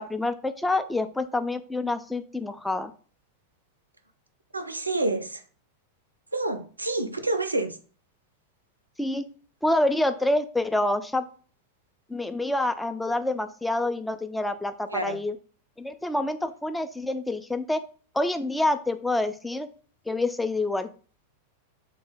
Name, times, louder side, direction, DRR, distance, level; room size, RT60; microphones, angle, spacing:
voice 1, 0.0-2.9 9.0-9.2 9.6-11.2 12.1-15.4 15.8-17.8 18.1-19.7 20.1-20.9, left 2 dB, 5° left, 9 dB, 0.3 m, -27 dB
voice 2, 4.5-5.4 6.3-7.8 14.9-15.2, right 2 dB, 80° right, 9 dB, 0.4 m, -28 dB
3.2 x 2.0 x 3.8 m, 0.41 s
figure-of-eight pair, 90°, 0 cm